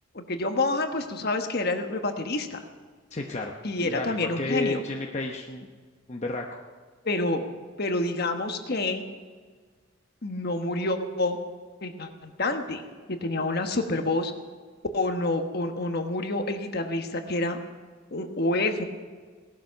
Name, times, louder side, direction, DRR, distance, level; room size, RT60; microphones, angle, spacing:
voice 1, 0.1-2.6 3.6-4.8 7.0-7.4 7.8-9.0 10.2-11.4 11.8-12.8 13.1-14.3 14.9-17.6 18.1-18.8, left 2 dB, 50° left, 6 dB, 1.3 m, -28 dB
voice 2, 3.1-3.5 3.8-5.7 6.1-6.6, left 2 dB, 35° left, 1 dB, 0.9 m, -31 dB
18.0 x 12.5 x 5.8 m, 1.5 s
head